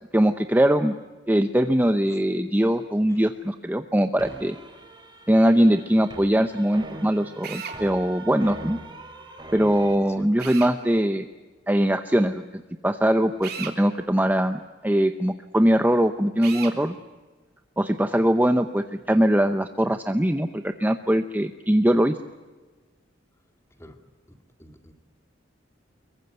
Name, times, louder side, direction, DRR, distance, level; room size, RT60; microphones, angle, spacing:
voice 1, 0.1-1.0 1.3-4.6 5.3-8.8 9.5-11.3 11.7-16.9 17.8-22.2, equal, 10° right, 8 dB, 0.7 m, -21 dB
sound 1, 4.2-9.9, right 2 dB, 25° right, 4.5 m, -41 dB
Drill, 7.4-7.8 10.4-10.7 13.4-13.8 16.4-16.8, right 7 dB, 55° right, 3.0 m, -35 dB
voice 2, 24.3-24.9, equal, 15° left, 5 dB, 2.4 m, -48 dB
25.0 x 23.0 x 8.1 m, 1.3 s
head